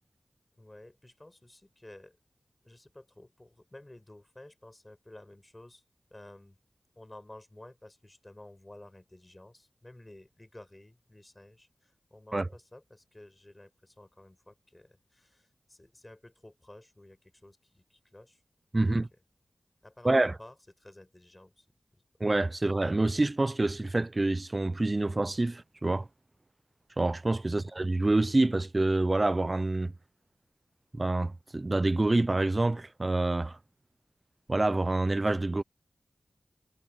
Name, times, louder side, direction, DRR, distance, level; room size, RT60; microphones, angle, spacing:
voice 1, 0.6-2.2 2.6-5.8 6.1-6.6 7.0-18.4 18.8-19.0 19.8-21.7 21.9-22.0 27.5-27.7, left 1 dB, 25° left, 6.8 m, -53 dB
voice 2, 18.7-19.1 20.0-20.3 22.2-26.1 27.0-29.9 30.9-33.6 34.5-35.6, right 2 dB, 35° right, 0.6 m, -27 dB
cardioid pair, 50°, 0 cm